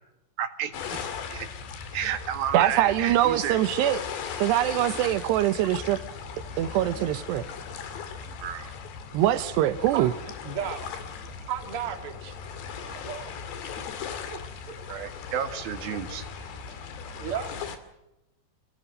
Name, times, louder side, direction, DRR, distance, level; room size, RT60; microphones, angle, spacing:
voice 1, 0.4-1.0 1.3-1.5 1.9-3.6 4.4-4.5 5.0-5.2 7.0-7.1 8.3-8.7 14.9-16.3, right 9 dB, 65° right, 3.4 m, -32 dB
sound 1, 0.7-17.8, left 6 dB, 90° left, 4.5 m, -38 dB
voice 2, 2.5-4.0 4.4-6.0 6.6-7.4 9.1-10.1, right 13 dB, 85° right, 3.1 m, -23 dB
voice 3, 10.4-10.9 11.2-12.3 12.8-13.4 17.1-17.5, right 9 dB, 40° right, 2.5 m, -34 dB
28.5 x 18.0 x 6.5 m
omnidirectional pair, 4.7 m